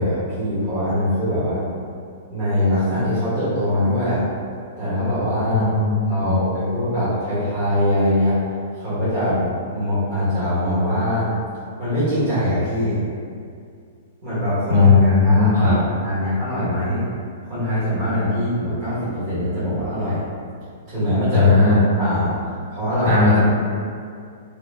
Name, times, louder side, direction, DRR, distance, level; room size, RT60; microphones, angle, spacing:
voice 1, 0.0-1.7 2.3-4.2 4.8-5.7 6.1-8.4 8.8-11.3 11.8-13.0 14.2-17.0 17.5-20.2 20.9-22.4 22.7-23.4, equal, 25° right, -13 dB, 0.9 m, -22 dB
voice 2, 5.5-6.4 14.7-15.7 21.3-21.8 23.0-23.4, left 3 dB, 75° right, -10 dB, 1.2 m, -16 dB
2.1 x 2.0 x 3.2 m, 2.2 s
hypercardioid pair, 175°, 0 cm